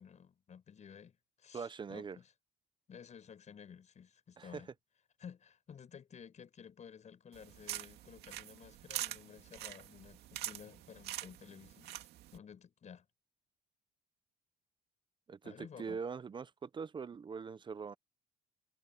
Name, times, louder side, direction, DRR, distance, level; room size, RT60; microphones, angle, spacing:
voice 1, 0.0-2.3 2.9-4.7 5.2-12.1 12.3-13.1 15.4-16.0, left 7 dB, 45° left, 7.3 m, -54 dB
voice 2, 1.5-2.2 4.4-4.6 15.3-17.9, right 5 dB, 30° right, 0.6 m, -42 dB
sound 1, 7.3-12.4, right 13 dB, 75° right, 2.2 m, -45 dB
cardioid pair, 110°, 17 cm